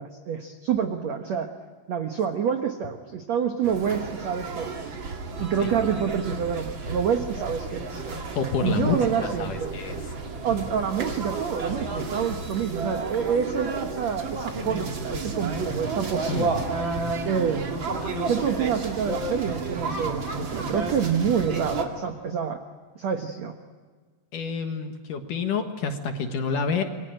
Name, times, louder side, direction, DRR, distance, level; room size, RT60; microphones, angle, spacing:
voice 1, 0.0-1.5 1.9-4.9 5.4-8.0 8.6-9.7 10.4-16.5 17.2-17.7 18.2-22.6 22.9-23.5, right 7 dB, 75° right, 6 dB, 1.6 m, -27 dB
sound 1, 3.6-21.9, right 3 dB, 35° right, 2.3 m, -31 dB
voice 2, 8.4-9.0 9.4-10.0 16.3-16.5 18.0-18.2 24.3-26.8, left 5 dB, 60° left, 6 dB, 2.6 m, -28 dB
28.0 x 23.5 x 9.0 m, 1.5 s
omnidirectional pair, 5.0 m